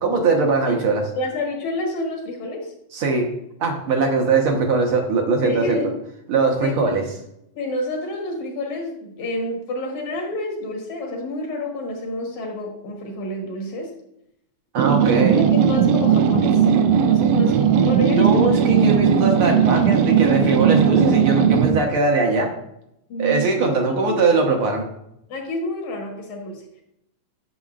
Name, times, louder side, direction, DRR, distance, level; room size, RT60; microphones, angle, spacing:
voice 1, 0.0-1.1 2.9-3.3 3.6-5.8 6.3-7.0 14.7-15.5 18.0-22.5 23.2-24.9, right 3 dB, 55° right, 2 dB, 1.7 m, -20 dB
voice 2, 1.2-2.7 5.4-5.9 6.6-7.0 7.6-13.9 15.0-16.7 17.1-18.4 23.1-24.2 25.3-26.8, left 1 dB, 70° left, 0 dB, 2.8 m, -29 dB
sound 1, 14.8-21.8, right 7 dB, 80° right, 1.6 m, -17 dB
9.3 x 7.4 x 2.5 m, 0.79 s
omnidirectional pair, 3.4 m